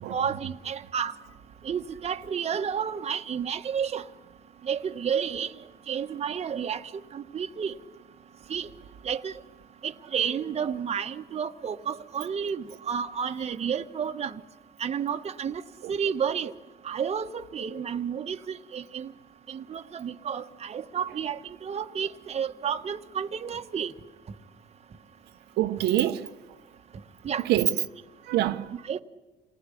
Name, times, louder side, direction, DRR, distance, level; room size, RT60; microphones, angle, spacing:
voice 1, 0.1-1.1 1.6-4.0 4.6-5.5 5.9-6.8 7.1-7.7 8.5-8.7 9.0-9.3 9.8-14.4 14.8-15.6 15.9-16.5 16.8-19.1 19.5-23.9 27.2-27.4 28.9-29.0, right 7 dB, 40° right, 1.3 m, -31 dB
voice 2, 25.6-26.3 27.5-27.7 28.3-28.7, right 13 dB, 80° right, 1.0 m, -25 dB
29.0 x 19.0 x 10.0 m
cardioid pair, 110°, 17 cm